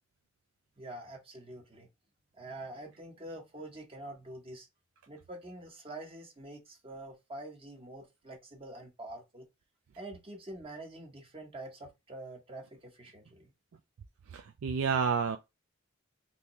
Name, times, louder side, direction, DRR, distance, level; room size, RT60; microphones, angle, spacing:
voice 1, 0.8-1.9 2.4-4.7 5.1-9.5 10.0-13.5, right 1 dB, 30° right, 0.8 m, -46 dB
voice 2, 14.3-15.4, right 6 dB, 85° right, 0.4 m, -29 dB
3.5 x 2.7 x 2.9 m
head